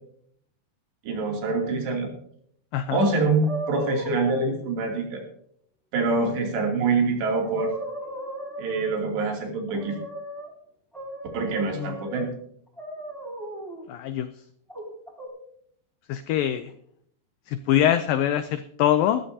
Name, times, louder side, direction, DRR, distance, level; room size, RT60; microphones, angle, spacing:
voice 1, 1.0-2.1 2.9-5.2 5.9-7.7 8.6-10.0 11.3-12.3, right 3 dB, 90° right, 1 dB, 5.1 m, -25 dB
voice 2, 2.7-3.1 11.8-11.9 13.9-14.3 16.1-16.7 17.5-19.2, left 11 dB, 90° left, 10 dB, 2.0 m, -24 dB
sound 1, 3.4-4.5 7.0-7.1 7.4-9.1 9.7-10.5 10.9-12.3 12.8-13.8 14.7-15.3, right 1 dB, ahead, 4.9 m, -36 dB
18.5 x 13.5 x 2.8 m, 0.66 s
omnidirectional pair, 4.8 m